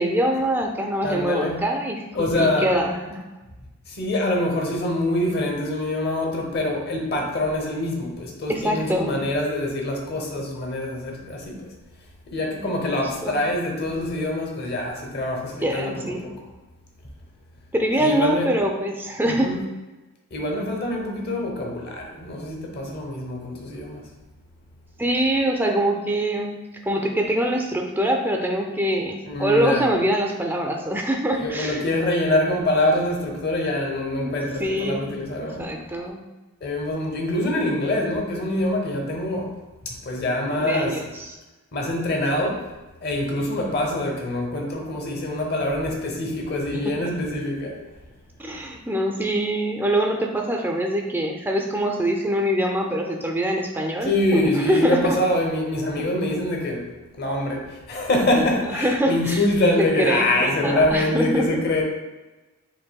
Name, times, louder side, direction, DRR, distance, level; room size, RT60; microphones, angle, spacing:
voice 1, 0.0-3.2 8.5-9.2 12.9-13.4 15.6-16.3 17.7-19.6 25.0-26.6 26.9-31.8 34.1-35.0 35.4-36.2 40.6-41.4 46.7-47.1 48.4-55.2 58.4-59.4 59.8-61.6, right 1 dB, 10° right, 2 dB, 0.3 m, -24 dB
voice 2, 1.0-1.6 2.1-2.7 3.9-11.7 12.3-16.3 18.0-18.5 19.2-19.6 20.3-24.1 29.3-29.9 31.3-35.6 36.6-39.6 39.8-41.0 41.7-42.7 43.0-47.8 54.0-56.8 57.2-61.8, left 1 dB, 45° left, 0 dB, 0.8 m, -25 dB
7.4 x 2.6 x 2.2 m, 1.1 s
head